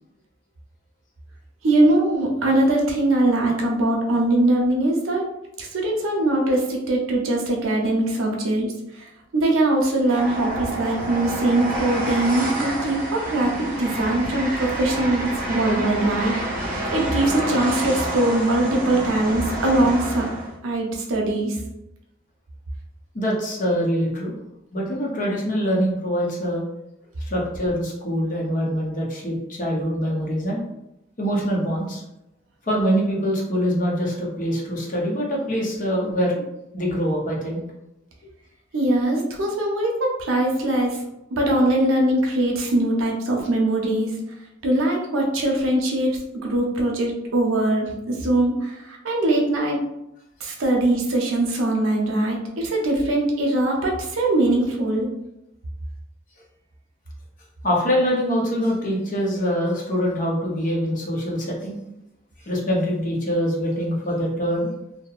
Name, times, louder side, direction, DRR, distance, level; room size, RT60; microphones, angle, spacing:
voice 1, 1.6-5.2 5.6-16.3 16.6-20.3 20.6-21.6 38.7-41.0 41.3-44.1 44.6-49.8 50.4-55.1, right 1 dB, 85° right, -1 dB, 0.6 m, -22 dB
Train, 10.0-20.5, right 1 dB, 40° right, 0.7 m, -29 dB
voice 2, 23.1-24.3 24.7-26.6 27.2-30.6 31.2-32.0 32.6-36.3 36.7-37.6 57.6-61.8 62.5-64.7, equal, 40° left, -2 dB, 0.6 m, -24 dB
2.7 x 2.1 x 2.3 m, 0.88 s
head